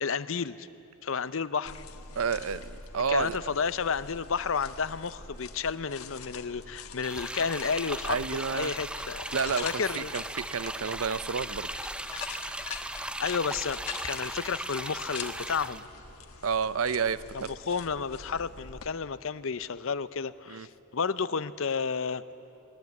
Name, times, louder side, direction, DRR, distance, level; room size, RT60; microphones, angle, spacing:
voice 1, 0.0-0.7 1.0-1.8 3.1-8.2 8.5-9.3 9.6-10.1 13.2-15.8 17.7-22.2, left 5 dB, 65° left, 15 dB, 0.6 m, -31 dB
sound 1, 1.6-18.9, left 5 dB, 80° left, 1.4 m, -44 dB
voice 2, 2.2-3.4 8.0-8.7 9.3-11.7 16.4-17.5 20.5-20.7, right 6 dB, 70° right, 16 dB, 0.6 m, -30 dB
sound 2, 7.0-15.8, right 1 dB, 5° right, 0.4 m, -37 dB
21.0 x 19.5 x 9.4 m, 2.9 s
head